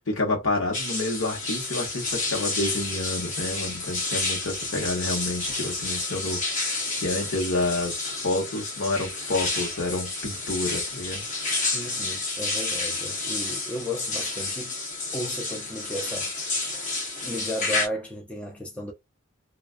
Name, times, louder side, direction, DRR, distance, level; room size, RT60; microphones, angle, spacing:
voice 1, 0.1-11.2, left 2 dB, 60° left, 1.0 m, -29 dB
sound 1, 0.7-17.9, left 3 dB, 35° left, 0.8 m, -30 dB
voice 2, 11.7-14.7 15.1-16.4 17.2-18.9, left 1 dB, 5° left, 0.4 m, -34 dB
2.4 x 2.3 x 2.4 m
head